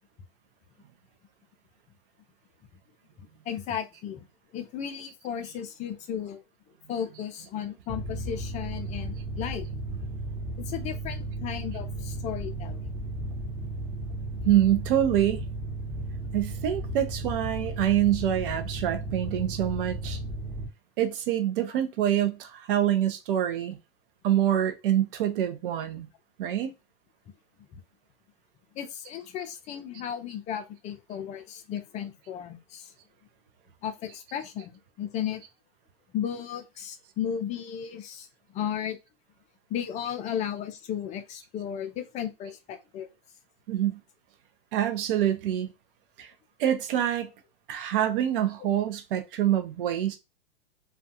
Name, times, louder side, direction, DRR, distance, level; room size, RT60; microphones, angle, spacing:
voice 1, 3.2-4.3 4.5-6.4 6.9-9.7 10.6-12.9 27.7-27.8 28.7-32.9 33.8-35.4 36.1-39.0 39.7-43.1, left 9 dB, 25° left, 0.4 m, -35 dB
Mechanical fan, 7.9-20.7, right 1 dB, 10° right, 0.8 m, -35 dB
voice 2, 14.4-15.4 16.3-20.2 21.0-23.8 24.2-26.1 26.4-26.7 43.7-44.0 44.7-45.7 46.2-46.3 46.6-47.3 47.7-50.2, right 11 dB, 60° right, 0.6 m, -26 dB
2.4 x 2.2 x 2.7 m
hypercardioid pair, 105°, 31 cm